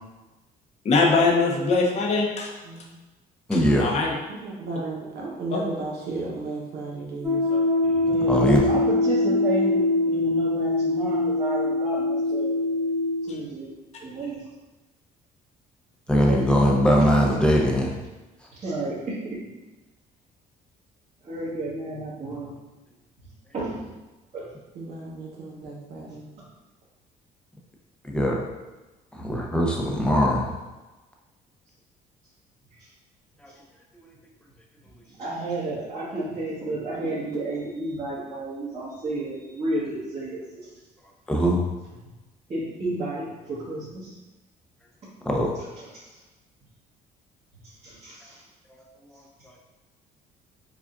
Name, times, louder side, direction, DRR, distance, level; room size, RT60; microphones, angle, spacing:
voice 1, 0.9-2.5 3.5-4.1 7.5-7.6, left 3 dB, 40° left, -1 dB, 0.7 m, -22 dB
voice 2, 3.5-3.9 7.8-7.9 8.3-8.7 16.1-17.9 28.0-28.4 29.1-30.5 33.4-33.5 41.3-41.6 45.2-45.5 48.7-48.8 49.1-49.2, equal, 5° left, -1 dB, 0.6 m, -21 dB
voice 3, 4.4-7.4 24.7-26.3, right 2 dB, 70° right, -3 dB, 1.0 m, -34 dB
sound 1, 7.2-13.3, left 2 dB, 15° right, 1.2 m, -23 dB
voice 4, 8.0-12.6 13.3-13.7 14.0-14.5 16.1-16.7 17.0-17.1 18.5-19.4 21.2-22.5 23.5-23.9 24.3-24.5 32.8-32.9 33.5-33.6 35.1-40.7 42.5-44.1 45.0-45.1 45.8-46.1 47.6-48.4, right 2 dB, 35° right, -12 dB, 1.4 m, -32 dB
4.9 x 2.4 x 2.5 m, 1.1 s
cardioid pair, 110°, 17 cm